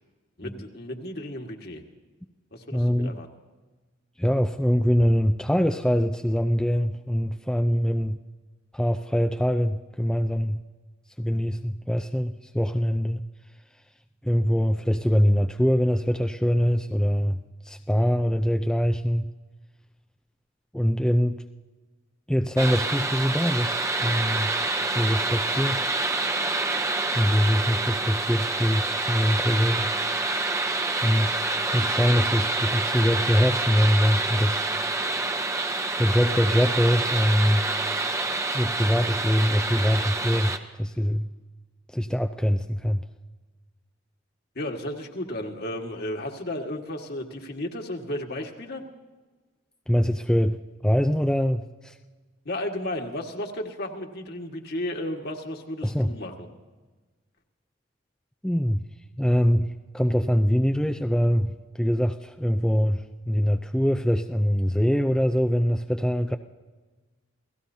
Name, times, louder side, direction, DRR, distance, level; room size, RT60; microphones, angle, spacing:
voice 1, 0.4-1.8 2.5-3.3 44.6-48.8 52.5-56.5, left 1 dB, 50° left, 2 dB, 1.8 m, -33 dB
voice 2, 2.7-3.2 4.2-8.2 8.7-10.6 11.2-13.2 14.2-19.3 20.7-21.4 22.3-24.6 24.9-25.9 27.1-29.9 31.0-31.3 31.7-34.7 36.0-37.7 38.5-40.5 40.8-41.3 41.9-43.0 49.9-52.0 55.8-56.1 58.4-58.8 59.2-66.4, equal, 5° left, 5 dB, 0.4 m, -23 dB
sound 1, 22.6-40.6, right 3 dB, 15° right, 0.8 m, -27 dB
29.0 x 17.5 x 2.8 m, 1.3 s
head